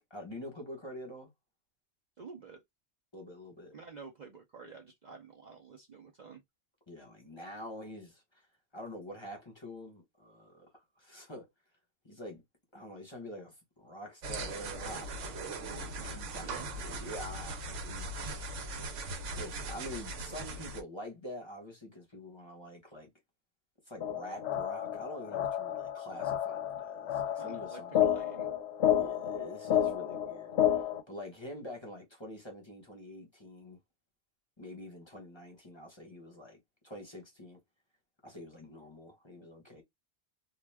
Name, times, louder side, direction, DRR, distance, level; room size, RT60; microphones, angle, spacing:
voice 1, 0.1-1.3 3.1-3.7 6.9-8.4 8.7-10.7 11.0-11.5 12.0-12.4 12.7-18.3 19.4-23.1 23.9-28.0 29.0-33.8 34.6-36.6 36.8-37.6 38.2-39.8, left 1 dB, 25° left, 1.0 m, -46 dB
voice 2, 2.2-2.6 3.7-6.4 16.0-16.2 16.4-16.7 27.4-28.5, right 5 dB, 50° right, 0.6 m, -49 dB
sound 1, 14.2-20.8, right 2 dB, 85° right, 1.0 m, -39 dB
sound 2, 24.0-31.0, left 10 dB, 70° left, 0.8 m, -31 dB
2.4 x 2.2 x 3.3 m
omnidirectional pair, 1.2 m